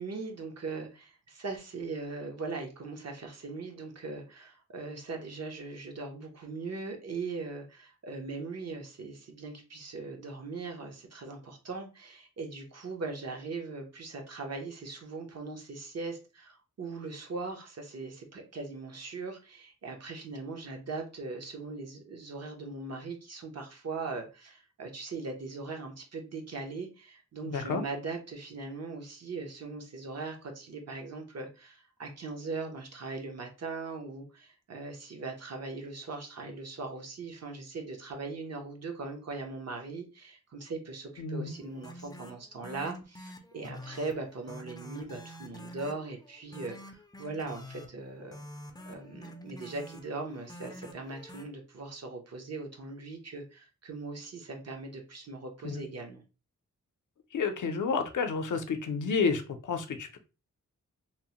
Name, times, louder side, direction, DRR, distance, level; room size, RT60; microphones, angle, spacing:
voice 1, 0.0-48.4 48.9-56.2, right 3 dB, 55° right, 3 dB, 0.7 m, -40 dB
voice 2, 27.5-27.8 41.2-41.6 55.6-55.8 57.3-60.2, left 5 dB, 70° left, 7 dB, 0.6 m, -30 dB
sound 1, 41.5-51.4, equal, 15° left, 0.4 m, -48 dB
2.9 x 2.0 x 2.8 m, 0.31 s
wide cardioid pair, 90°, 31 cm